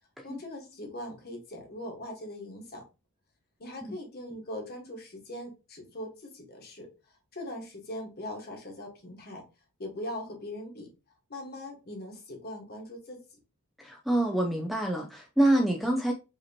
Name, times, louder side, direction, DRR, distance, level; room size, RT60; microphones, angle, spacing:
voice 1, 0.2-2.8 3.6-9.4 9.8-10.9 11.3-13.2, left 1 dB, 45° left, 1.3 m, -41 dB
voice 2, 13.8-16.1, right 1 dB, ahead, 0.4 m, -26 dB
4.9 x 3.0 x 2.8 m
head